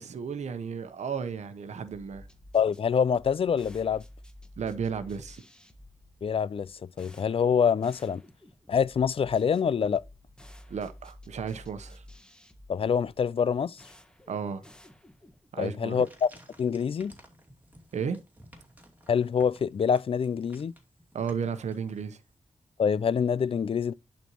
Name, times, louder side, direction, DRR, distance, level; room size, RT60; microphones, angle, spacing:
voice 1, 0.0-2.3 4.6-5.4 10.7-12.0 14.3-14.6 15.5-16.0 17.9-18.2 21.1-22.2, right 6 dB, 85° right, 0.9 m, -33 dB
sound 1, 1.9-15.5, left 1 dB, 5° left, 1.5 m, -52 dB
voice 2, 2.5-4.0 6.2-6.7 7.0-8.2 8.7-10.0 12.7-13.8 15.6-16.3 16.6-17.1 19.1-20.7 22.8-23.9, left 7 dB, 55° left, 0.4 m, -25 dB
sound 2, 15.8-22.3, right 1 dB, 15° right, 2.5 m, -56 dB
11.0 x 4.4 x 3.0 m
cardioid pair, 80°, 12 cm